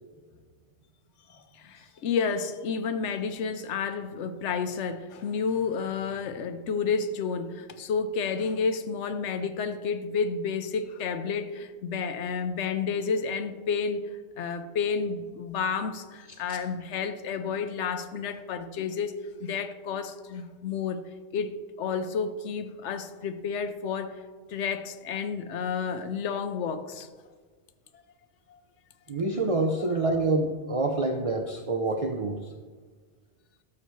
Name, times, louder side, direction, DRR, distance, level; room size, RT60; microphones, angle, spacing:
voice 1, 1.3-14.0 14.4-19.1 19.4-21.0 21.3-24.2 24.5-27.1 27.9-28.0 28.5-28.6 29.8-29.9, left 5 dB, 70° left, 10 dB, 0.9 m, -31 dB
voice 2, 29.1-32.4, right 2 dB, 55° right, 3 dB, 0.4 m, -27 dB
12.5 x 6.7 x 3.1 m, 1.5 s
omnidirectional pair, 1.3 m